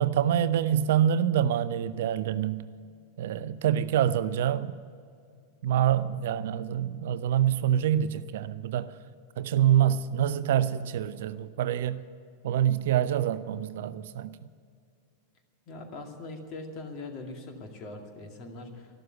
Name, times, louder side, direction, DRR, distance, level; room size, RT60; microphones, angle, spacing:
voice 1, 0.0-2.7 3.2-4.8 5.6-9.0 9.4-12.0 12.4-14.4, right 10 dB, 55° right, 0.5 m, -26 dB
voice 2, 15.7-18.9, left 2 dB, 35° left, 2.3 m, -41 dB
13.5 x 12.5 x 8.2 m
figure-of-eight pair, 90°, 0 cm